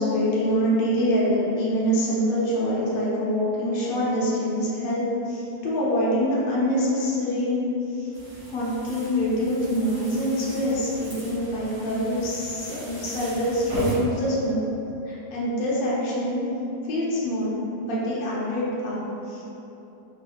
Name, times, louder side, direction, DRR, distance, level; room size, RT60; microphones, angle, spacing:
voice 1, 0.0-8.1 8.5-14.7 15.1-16.5 16.8-19.0 19.2-19.4, equal, 60° left, -7 dB, 1.2 m, -25 dB
sound 1, 8.1-13.9, right 2 dB, 80° right, 2.0 m, -38 dB
4.8 x 3.5 x 2.3 m, 2.9 s
omnidirectional pair, 2.0 m